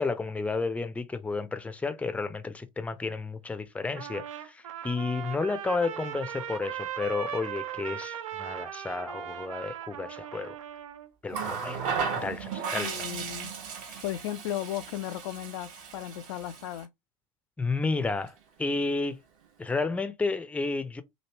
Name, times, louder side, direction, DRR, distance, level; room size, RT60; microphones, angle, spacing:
voice 1, 0.0-10.6 11.2-11.8 12.2-13.1 13.7-14.0 17.6-19.2 19.6-21.0, left 3 dB, 5° left, 0.5 m, -32 dB
Trumpet, 3.9-11.1, right 9 dB, 75° right, 0.5 m, -38 dB
Water tap faucet, 11.3-16.8 18.1-18.3, right 6 dB, 50° right, 0.9 m, -35 dB
voice 2, 12.8-13.5 14.0-16.9, left 12 dB, 65° left, 0.4 m, -35 dB
3.0 x 2.7 x 2.9 m
hypercardioid pair, 85°, 17 cm